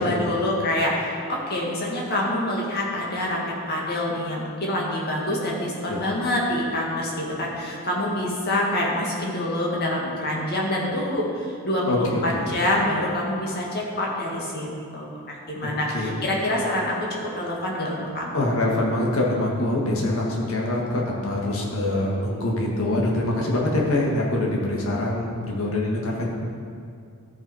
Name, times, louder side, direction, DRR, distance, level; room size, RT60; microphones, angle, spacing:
voice 1, 0.0-3.4 3.7-18.4, left 1 dB, 45° left, -3 dB, 1.9 m, -26 dB
voice 2, 11.9-12.6 15.6-16.3 18.3-26.3, left 1 dB, 65° left, -2 dB, 1.5 m, -24 dB
13.0 x 5.3 x 4.8 m, 2.3 s
head